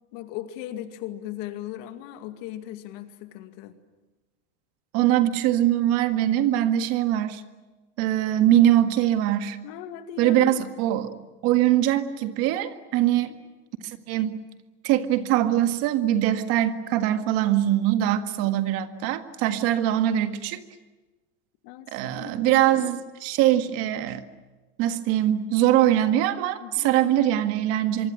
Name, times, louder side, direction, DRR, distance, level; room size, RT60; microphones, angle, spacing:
voice 1, 0.1-3.8 9.6-10.5 13.0-13.4 18.4-18.5 21.6-22.9 26.6-26.9, left 12 dB, 50° left, 8 dB, 2.4 m, -38 dB
voice 2, 4.9-7.4 8.0-9.6 10.2-11.1 11.4-13.3 13.8-14.4 14.8-20.6 21.9-24.2 24.8-28.1, right 12 dB, 40° right, 9 dB, 1.8 m, -22 dB
24.5 x 24.0 x 9.2 m, 1.2 s
supercardioid pair, 170°, 36 cm